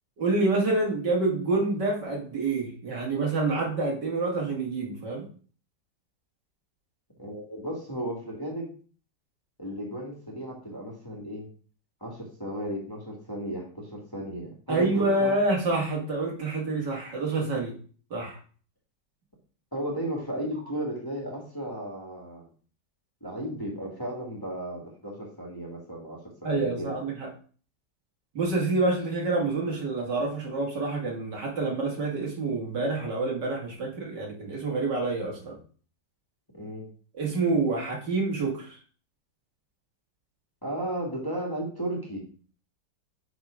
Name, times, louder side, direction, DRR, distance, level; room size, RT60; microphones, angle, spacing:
voice 1, 0.2-5.2 14.7-17.8 18.1-18.4 26.4-27.3 28.3-35.6 37.1-38.8, right 3 dB, 70° right, -2 dB, 2.6 m, -27 dB
voice 2, 7.2-8.7 9.6-11.5 12.0-15.3 19.7-22.5 23.2-26.9 36.5-36.9 40.6-42.2, right 1 dB, 10° left, -2 dB, 1.7 m, -34 dB
7.8 x 3.7 x 5.0 m, 0.42 s
omnidirectional pair, 2.0 m